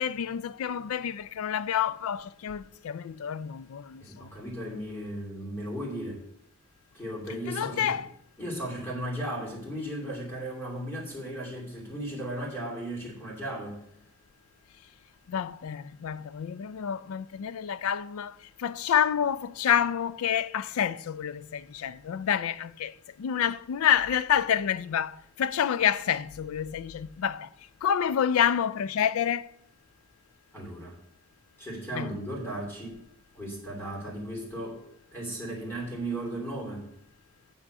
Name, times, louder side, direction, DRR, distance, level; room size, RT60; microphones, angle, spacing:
voice 1, 0.0-4.3 7.3-8.1 15.3-27.5 27.8-29.5 31.9-32.1, left 9 dB, 75° left, 0.4 m, -28 dB
voice 2, 4.0-6.2 6.9-8.0 8.4-13.8 30.5-30.9 31.6-33.0 33.3-34.8 35.1-36.9, right 1 dB, 10° left, 2.9 m, -36 dB
7.1 x 6.1 x 6.6 m
head